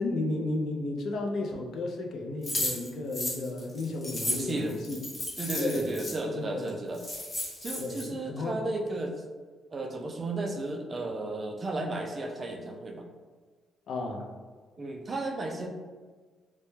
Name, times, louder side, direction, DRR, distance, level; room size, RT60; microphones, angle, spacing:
voice 1, 0.0-5.0 5.6-6.0 6.2-6.7 7.8-8.6 13.9-14.3, left 2 dB, 65° left, 1 dB, 0.3 m, -33 dB
sound 1, 2.4-6.1 6.7-6.8 6.9-8.0, left 1 dB, 30° left, 0.8 m, -34 dB
voice 2, 4.2-4.8 5.4-7.0 7.6-9.2 9.7-13.0 14.8-15.7, right 2 dB, 35° right, 3 dB, 0.3 m, -34 dB
2.1 x 2.1 x 3.0 m, 1.5 s
cardioid pair, 90°, 0 cm